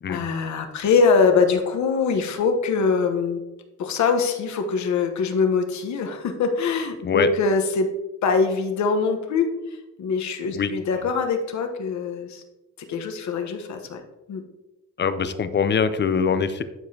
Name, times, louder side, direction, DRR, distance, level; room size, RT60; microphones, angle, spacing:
voice 1, 0.1-3.4 3.8-7.9 8.2-9.5 10.0-12.4 12.9-14.0 14.3-14.4, left 5 dB, 70° left, 6 dB, 1.1 m, -23 dB
voice 2, 15.0-16.6, left 6 dB, 35° left, 12 dB, 0.6 m, -23 dB
11.5 x 4.9 x 2.8 m, 1.0 s
cardioid pair, 90°, 30 cm